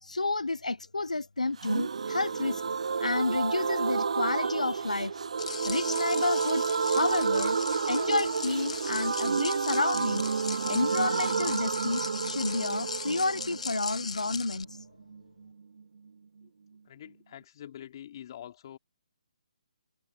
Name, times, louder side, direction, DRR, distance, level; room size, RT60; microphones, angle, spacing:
voice 1, 0.0-2.6 3.0-5.2 5.7-7.6 7.8-10.2 10.7-14.8, left 3 dB, 90° left, 0.6 m, -30 dB
sound 1, 1.6-15.2 15.5-15.6 15.8-15.9, right 5 dB, 65° right, 0.4 m, -30 dB
sound 2, 5.4-14.6, left 4 dB, 70° left, 1.5 m, -39 dB
voice 2, 16.9-18.8, left 10 dB, 40° left, 3.7 m, -45 dB
figure-of-eight pair, 145°, 4 cm